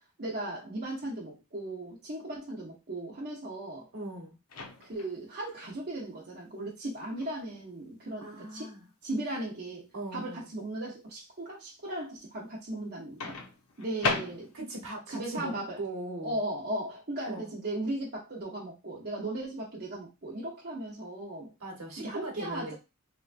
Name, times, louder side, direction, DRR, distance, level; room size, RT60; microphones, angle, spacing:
voice 1, 0.2-3.9 4.8-8.7 9.0-13.4 13.8-14.5 15.1-15.8 16.2-21.5 22.0-22.7, right 1 dB, 50° right, 0.7 m, -37 dB
voice 2, 3.9-4.4 8.2-8.8 9.9-10.5 14.5-16.4 17.2-17.5 21.6-22.7, right 1 dB, 70° right, 1.1 m, -39 dB
Microwave oven, 4.5-5.2 7.2-7.4 13.2-14.8, left 4 dB, 85° left, 0.6 m, -34 dB
3.2 x 2.2 x 2.5 m
head